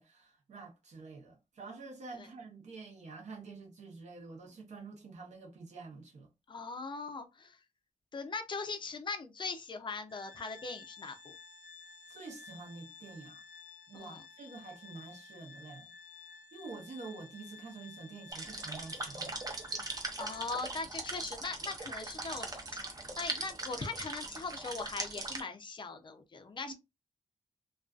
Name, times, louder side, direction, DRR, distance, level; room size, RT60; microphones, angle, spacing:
voice 1, 0.0-6.3 12.1-13.4 13.9-15.9 16.5-19.5 26.7-26.8, right 4 dB, 70° right, 0.7 m, -48 dB
voice 2, 6.5-7.6 8.1-11.2 13.9-14.2 20.2-22.5 23.2-26.7, left 4 dB, 40° left, 0.4 m, -40 dB
Organ, 10.1-20.7, left 5 dB, 15° right, 0.9 m, -53 dB
sound 1, 18.3-25.4, right 2 dB, 30° right, 0.5 m, -40 dB
2.5 x 2.3 x 2.3 m
wide cardioid pair, 180°, 12 cm